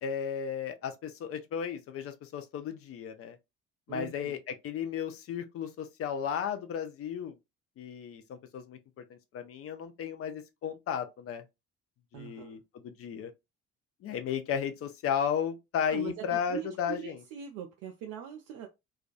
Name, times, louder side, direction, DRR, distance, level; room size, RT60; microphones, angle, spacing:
voice 1, 0.0-3.4 3.9-7.4 7.8-11.4 12.1-13.3 14.0-17.2, left 8 dB, 35° left, 0.5 m, -34 dB
voice 2, 3.9-4.4 12.1-12.6 15.9-18.7, right 9 dB, 50° right, 0.5 m, -41 dB
2.3 x 2.2 x 2.3 m
figure-of-eight pair, 45°, 39 cm